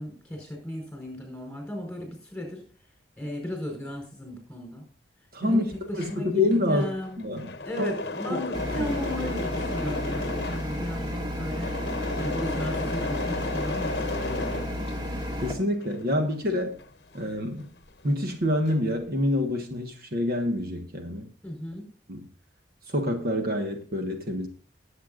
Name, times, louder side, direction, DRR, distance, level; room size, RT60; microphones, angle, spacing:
voice 1, 0.0-2.6 3.2-4.8 5.4-7.2 7.6-11.7 12.2-14.9 21.4-21.8, equal, 5° left, 1 dB, 4.9 m, -35 dB
voice 2, 5.3-5.7 6.0-6.9 7.2-7.5 7.8-7.9 8.8-8.9 15.4-16.8 17.1-17.7 18.0-21.3 22.1-22.2 22.9-24.5, left 1 dB, 55° right, 4 dB, 1.4 m, -27 dB
Engine / Mechanisms, 5.7-15.3 15.7-18.0 18.3-19.0, left 3 dB, 65° left, 0.9 m, -35 dB
sound 1, 8.5-15.6, left 1 dB, 25° right, 2.1 m, -32 dB
18.5 x 8.1 x 2.5 m, 0.41 s
head